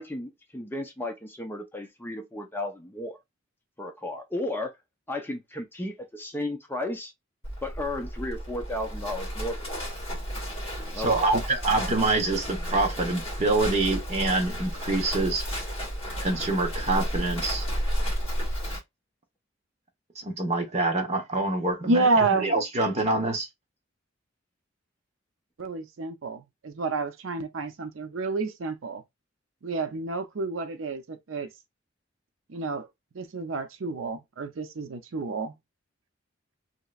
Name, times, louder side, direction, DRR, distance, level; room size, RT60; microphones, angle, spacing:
voice 1, 0.0-3.2 3.8-4.7 5.1-7.1 7.6-9.6 10.8-11.3, left 1 dB, 10° left, 0.6 m, -34 dB
Livestock farm animals working animals, 7.4-18.8, equal, 30° left, 1.8 m, -32 dB
voice 2, 11.0-15.4 16.2-17.6 20.2-22.1 22.4-23.5, right 2 dB, 35° right, 1.0 m, -26 dB
voice 3, 21.8-22.5 25.6-29.0 29.6-31.5 32.5-32.9 33.1-35.5, right 3 dB, 80° right, 0.6 m, -29 dB
3.1 x 2.8 x 2.4 m
head